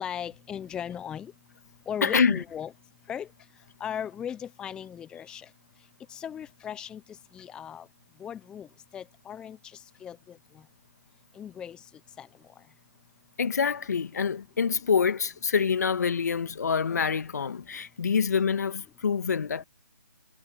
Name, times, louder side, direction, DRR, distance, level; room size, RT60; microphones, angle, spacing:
voice 1, 0.0-1.3 1.9-2.7 3.1-3.3 3.8-5.5 6.1-7.0 7.3-7.9 8.2-8.7 8.9-9.6 10.0-10.4 11.4-11.8 12.2-12.3, left 9 dB, 10° left, 0.8 m, -37 dB
voice 2, 2.0-2.4 13.4-19.6, left 6 dB, 60° left, 1.8 m, -26 dB
figure-of-eight pair, 150°, 10 cm